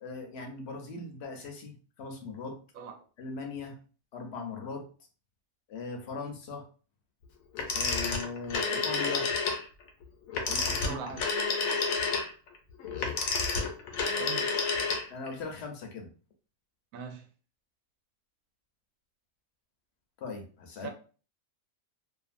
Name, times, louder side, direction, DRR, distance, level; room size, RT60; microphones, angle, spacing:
voice 1, 0.0-2.6 3.2-3.8 4.1-4.9 5.7-6.6 7.7-9.3 10.5-11.0 15.1-16.1 20.2-20.9, left 4 dB, 60° left, 0.8 m, -39 dB
Telephone, 7.6-9.6 10.3-15.3, left 4 dB, 85° left, 1.1 m, -30 dB
voice 2, 10.8-11.2 14.1-14.5 16.9-17.2 20.8-20.9, right 6 dB, 80° right, 1.0 m, -40 dB
2.6 x 2.4 x 2.4 m
omnidirectional pair, 1.4 m